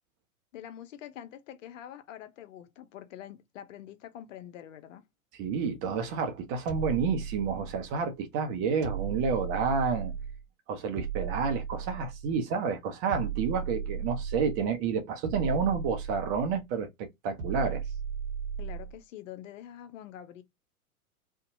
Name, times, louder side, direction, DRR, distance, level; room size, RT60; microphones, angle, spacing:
voice 1, 0.5-5.0 18.6-20.4, left 11 dB, 60° left, 0.7 m, -45 dB
voice 2, 5.3-10.1 10.7-17.8, right 5 dB, 30° right, 0.6 m, -30 dB
sound 1, 6.7-8.0 8.8-10.5 11.0-12.4 13.1-14.7 15.2-16.6 17.4-19.0, right 8 dB, 50° right, 0.9 m, -36 dB
2.7 x 2.1 x 2.6 m
figure-of-eight pair, 100°, 44 cm